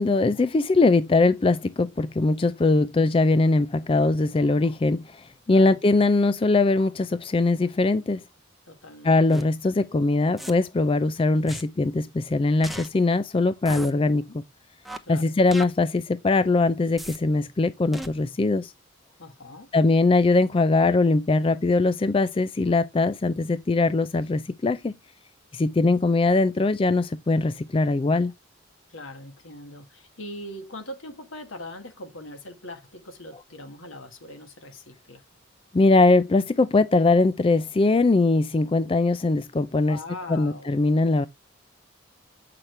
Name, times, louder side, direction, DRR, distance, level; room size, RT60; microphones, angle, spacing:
voice 1, 0.0-8.2 9.0-14.3 15.1-18.7 19.7-24.9 25.5-28.3 35.7-40.0 40.3-41.3, left 3 dB, 25° left, 0.3 m, -21 dB
voice 2, 8.7-9.4 15.0-15.3 19.2-19.7 28.9-35.2 39.9-40.8, left 1 dB, 75° left, 1.9 m, -41 dB
sound 1, 9.3-9.4 10.4-10.5 11.5-11.6 12.6-12.9 13.7-13.9 14.9-15.0 15.5-15.6 17.0-17.2 17.9-18.1, right 1 dB, ahead, 0.7 m, -36 dB
8.0 x 5.8 x 3.2 m
head